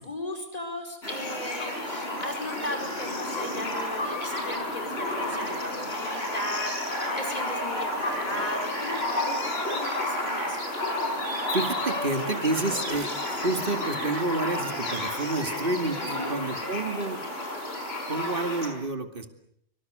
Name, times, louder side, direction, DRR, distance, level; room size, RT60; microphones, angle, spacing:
voice 1, 0.1-10.6 16.0-16.3, left 1 dB, 30° left, 5 dB, 5.4 m, -37 dB
sound 1, 1.0-18.7, left 1 dB, 60° left, 6.0 m, -31 dB
voice 2, 11.5-17.2 18.1-19.3, right 2 dB, 50° right, 6 dB, 2.6 m, -29 dB
25.0 x 24.5 x 8.0 m, 0.71 s
omnidirectional pair, 1.2 m